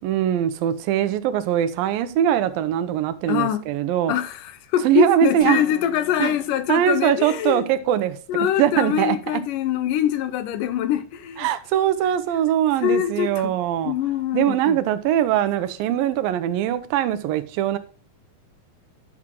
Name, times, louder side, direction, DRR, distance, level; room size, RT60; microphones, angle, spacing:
voice 1, 0.0-4.1 4.8-5.6 6.2-6.3 6.7-8.2 8.6-9.2 11.4-13.9 14.3-17.8, right 11 dB, 85° right, 2.5 m, -21 dB
voice 2, 3.3-3.6 4.1-7.7 8.3-11.5 12.8-13.5 13.9-14.8, left 10 dB, 80° left, 2.2 m, -24 dB
sound 1, 5.4-7.5, left 4 dB, 40° left, 1.9 m, -44 dB
11.0 x 6.1 x 3.7 m
omnidirectional pair, 4.0 m